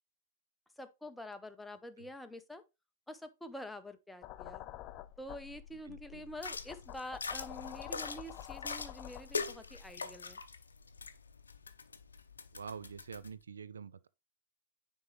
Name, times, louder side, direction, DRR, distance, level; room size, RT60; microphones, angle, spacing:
voice 1, 0.8-2.6 3.1-4.6 5.2-10.4, left 1 dB, 5° left, 0.7 m, -47 dB
sound 1, 4.2-9.9, left 12 dB, 40° left, 0.4 m, -49 dB
voice 2, 5.9-6.3 12.5-14.1, right 6 dB, 80° right, 0.4 m, -47 dB
sound 2, 6.3-13.3, left 4 dB, 85° left, 0.6 m, -43 dB
9.4 x 3.7 x 3.1 m
hypercardioid pair, 105°, 0 cm